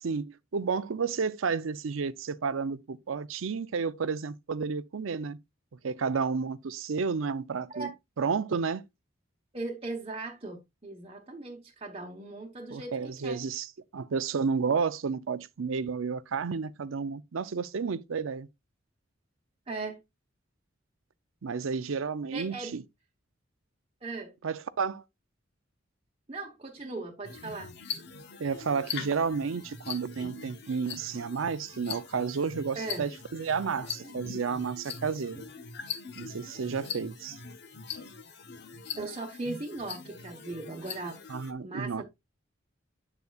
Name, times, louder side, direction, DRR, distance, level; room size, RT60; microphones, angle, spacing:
voice 1, 0.0-5.4 5.8-7.9 8.2-8.8 12.7-18.5 21.4-22.8 24.4-25.0 28.4-35.4 36.2-37.4 41.3-42.1, right 5 dB, 85° right, 0.5 m, -31 dB
voice 2, 9.5-13.4 19.7-20.0 22.3-22.8 24.0-24.3 26.3-27.7 32.7-33.1 38.9-41.2 41.6-42.1, right 3 dB, 30° right, 1.0 m, -38 dB
sound 1, 27.2-41.5, left 5 dB, 55° left, 1.0 m, -42 dB
7.9 x 7.0 x 2.4 m
head